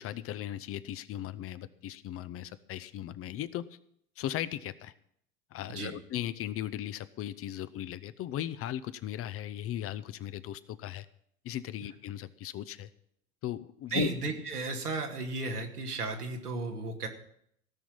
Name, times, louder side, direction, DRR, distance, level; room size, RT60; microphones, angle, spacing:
voice 1, 0.0-3.7 4.2-4.9 5.5-11.1 11.4-12.9 13.4-14.1, left 12 dB, 30° left, 15 dB, 0.7 m, -37 dB
voice 2, 13.9-17.1, right 3 dB, 90° right, 2 dB, 2.2 m, -34 dB
17.0 x 6.1 x 8.8 m, 0.70 s
figure-of-eight pair, 80°, 44 cm